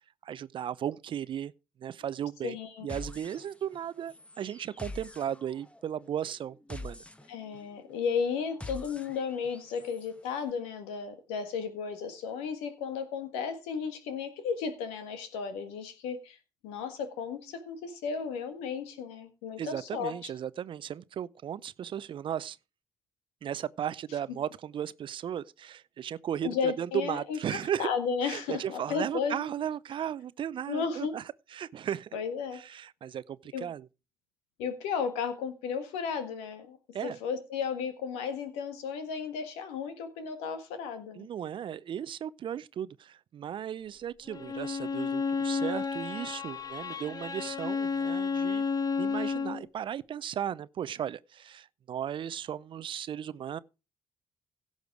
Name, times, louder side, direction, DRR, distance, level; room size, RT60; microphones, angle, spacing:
voice 1, 0.2-1.5 1.8-2.6 2.8-7.0 19.6-22.6 23.4-27.9 28.2-31.2 31.5-32.1 32.5-33.9 36.9-37.2 41.2-48.6 49.0-53.6, right 9 dB, 55° right, 0.6 m, -36 dB
voice 2, 2.4-3.0 7.3-16.4 16.6-20.3 26.4-29.5 30.7-31.2 32.1-32.6 33.5-33.7 34.6-36.8 37.0-41.3, left 6 dB, 80° left, 1.7 m, -34 dB
sound 1, 2.9-10.1, left 2 dB, 10° left, 1.2 m, -46 dB
Bowed string instrument, 44.3-49.7, left 5 dB, 35° left, 1.4 m, -31 dB
16.0 x 6.5 x 4.8 m
hypercardioid pair, 45°, 10 cm